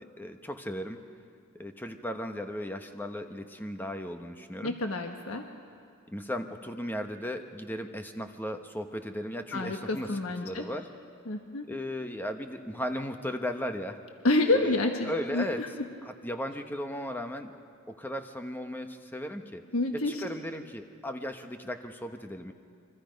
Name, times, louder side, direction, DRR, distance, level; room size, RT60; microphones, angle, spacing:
voice 1, 0.2-1.0 1.6-4.7 6.1-10.1 10.4-10.9 11.6-14.0 14.5-15.6 16.0-17.5 17.9-19.6 19.9-22.5, equal, 10° left, 6 dB, 1.1 m, -36 dB
voice 2, 4.6-5.5 9.5-10.7 11.3-11.7 14.2-15.7 19.7-20.2, left 2 dB, 75° left, 3 dB, 1.4 m, -28 dB
27.5 x 24.0 x 5.3 m, 2.3 s
head